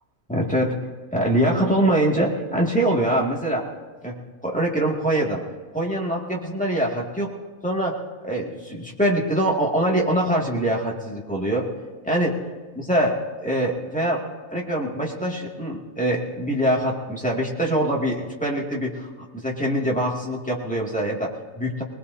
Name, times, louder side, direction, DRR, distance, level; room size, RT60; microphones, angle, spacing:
voice 1, 0.3-0.8 1.1-3.7 4.0-4.2 4.4-5.4 5.7-7.3 7.6-8.0 8.2-11.6 12.0-12.3 12.8-19.1 19.4-21.8, right 1 dB, 5° left, -3 dB, 2.2 m, -23 dB
21.5 x 20.5 x 2.8 m, 1.4 s
omnidirectional pair, 1.4 m